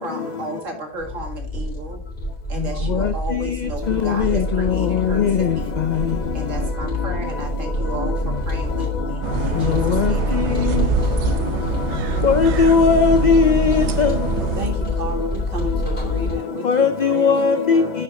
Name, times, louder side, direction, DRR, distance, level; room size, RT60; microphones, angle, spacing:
voice 1, 0.0-2.0 2.5-5.7 6.3-10.7, right 2 dB, 90° right, 2.3 m, -34 dB
sound 1, 1.0-16.3, left 1 dB, 45° left, 4.2 m, -26 dB
voice 2, 3.9-4.4 5.1-5.5 9.7-10.1 12.2-14.1 16.6-17.8, left 5 dB, 70° left, 0.4 m, -17 dB
sound 2, 9.2-14.7, right 7 dB, 70° right, 0.9 m, -26 dB
voice 3, 14.4-17.9, equal, 45° right, 2.1 m, -31 dB
10.5 x 6.0 x 2.6 m
omnidirectional pair, 1.3 m